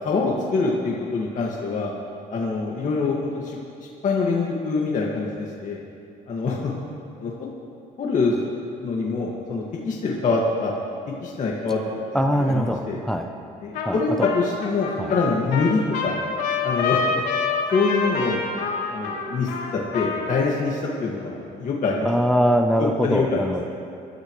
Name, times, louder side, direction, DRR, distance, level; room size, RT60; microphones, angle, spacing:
voice 1, 0.0-1.9 2.3-5.8 6.3-6.7 7.2-7.3 8.0-8.4 8.8-10.7 11.2-11.8 12.1-13.0 13.6-16.1 16.6-17.2 17.7-18.4 18.9-19.5 19.9-22.1 22.8-23.4, left 4 dB, 45° left, -3 dB, 2.0 m, -25 dB
voice 2, 12.1-13.3 13.9-14.3 15.0-15.1 22.0-23.6, equal, 5° left, 5 dB, 0.8 m, -22 dB
Trumpet, 13.7-13.9 14.2-20.4, left 5 dB, 90° left, 3.2 m, -27 dB
25.5 x 13.0 x 3.2 m, 2.6 s
cardioid pair, 110°, 17 cm